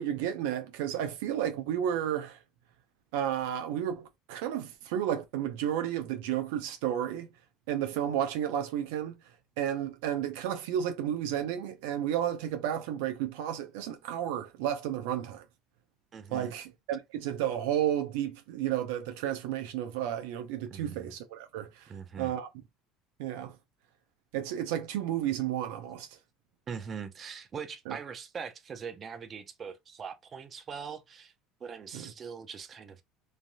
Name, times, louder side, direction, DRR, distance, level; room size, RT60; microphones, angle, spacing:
voice 1, 0.0-2.4 3.1-7.3 7.7-9.2 9.6-15.4 16.3-21.9 22.2-22.5 23.2-23.6 24.3-26.2 27.9-28.0 31.9-32.1, right 10 dB, 80° right, 0.5 m, -32 dB
voice 2, 16.1-16.5 20.7-21.1 21.9-22.3 26.7-31.3 31.6-33.0, right 6 dB, 40° right, 0.6 m, -41 dB
3.3 x 2.5 x 2.2 m
supercardioid pair, 85°, 0 cm